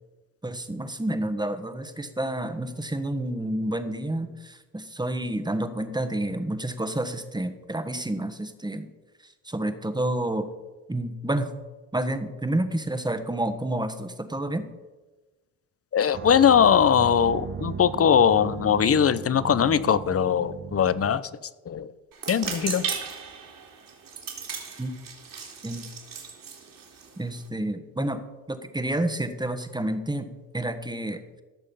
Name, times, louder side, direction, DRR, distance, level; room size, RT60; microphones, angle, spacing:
voice 1, 0.4-8.9 9.2-10.5 10.9-11.5 11.9-14.7 24.8-25.0 25.6-25.9 27.2-28.2 28.5-31.4, right 1 dB, 10° right, 9 dB, 1.4 m, -29 dB
voice 2, 15.9-21.3 21.6-21.9 22.3-22.9, left 8 dB, 35° left, 16 dB, 0.8 m, -21 dB
sound 1, 16.1-21.2, right 7 dB, 30° right, 0.7 m, -37 dB
sound 2, 22.1-27.5, right 6 dB, 55° right, 3.0 m, -36 dB
15.0 x 6.5 x 5.5 m, 1.2 s
hypercardioid pair, 55°, 39 cm